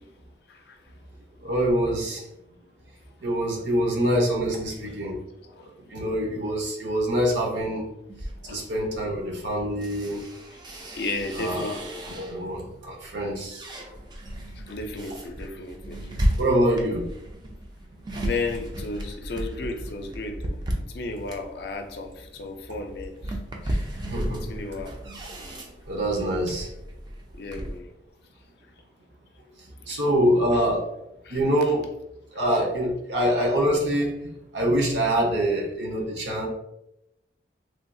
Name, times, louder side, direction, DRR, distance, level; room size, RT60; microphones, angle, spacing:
voice 1, 1.4-2.2 3.2-5.2 5.9-7.9 8.4-10.2 11.4-11.8 12.2-13.6 16.4-17.0 24.0-24.5 25.9-26.7 29.9-30.9 31.3-31.8 32.3-36.5, equal, 80° right, -1 dB, 0.8 m, -25 dB
sound 1, 8.1-12.6 13.1-27.8, equal, 25° right, 0.3 m, -34 dB
voice 2, 11.0-11.9 13.0-13.5 14.6-16.1 16.7-16.9 18.2-23.4 23.6-24.0 24.4-25.0 27.4-27.9 29.9-30.2 30.5-30.6 31.2-31.4, left 3 dB, 65° left, 5 dB, 0.4 m, -34 dB
3.2 x 2.3 x 2.6 m, 0.86 s
head